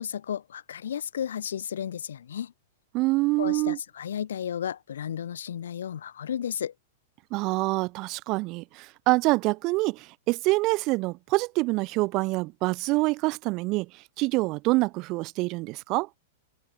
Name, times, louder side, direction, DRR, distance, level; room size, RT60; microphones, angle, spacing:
voice 1, 0.0-2.5 3.4-6.7, left 9 dB, 65° left, 1.2 m, -33 dB
voice 2, 2.9-3.8 7.3-16.1, right 23 dB, 40° right, 0.9 m, -26 dB
figure-of-eight pair, 100°, 0 cm